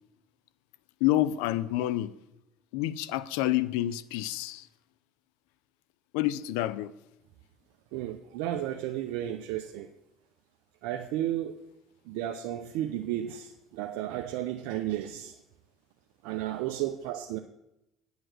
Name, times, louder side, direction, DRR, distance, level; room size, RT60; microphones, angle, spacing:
voice 1, 1.0-2.1 2.7-4.6 6.1-6.9, left 14 dB, 85° left, 0.5 m, -28 dB
voice 2, 7.9-9.9 10.8-11.6 12.1-15.3 16.2-17.4, right 12 dB, 80° right, 0.6 m, -33 dB
9.1 x 8.0 x 6.5 m
supercardioid pair, 80°, 0 cm